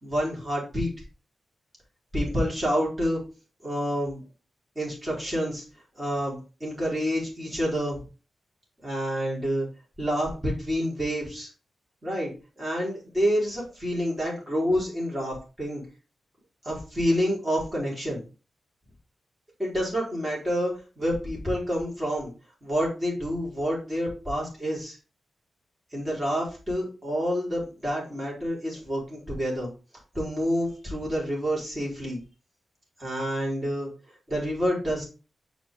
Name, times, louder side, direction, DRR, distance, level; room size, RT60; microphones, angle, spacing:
voice 1, 0.0-0.9 2.1-3.2 3.6-4.2 4.8-5.6 6.0-8.0 8.8-9.7 10.0-11.5 12.0-12.3 12.6-15.8 16.6-18.2 19.6-22.3 22.6-25.0 25.9-29.7 30.1-32.2 33.0-33.9 34.3-35.1, equal, 20° right, -4 dB, 4.1 m, -28 dB
6.8 x 4.6 x 3.7 m, 0.33 s
wide cardioid pair, 100°, 0 cm